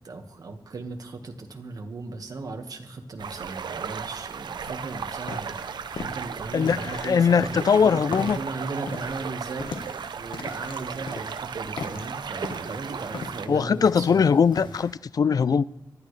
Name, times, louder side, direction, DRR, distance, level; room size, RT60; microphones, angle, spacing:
voice 1, 0.0-9.8 10.2-14.4, right 3 dB, 55° right, 1.5 m, -37 dB
sound 1, 3.2-13.5, right 6 dB, 75° right, 0.6 m, -35 dB
sound 2, 4.6-14.9, left 4 dB, 80° left, 1.3 m, -40 dB
voice 2, 6.5-8.4 13.5-15.6, left 6 dB, 55° left, 0.4 m, -21 dB
24.5 x 11.5 x 3.2 m
wide cardioid pair, 125°, 8 cm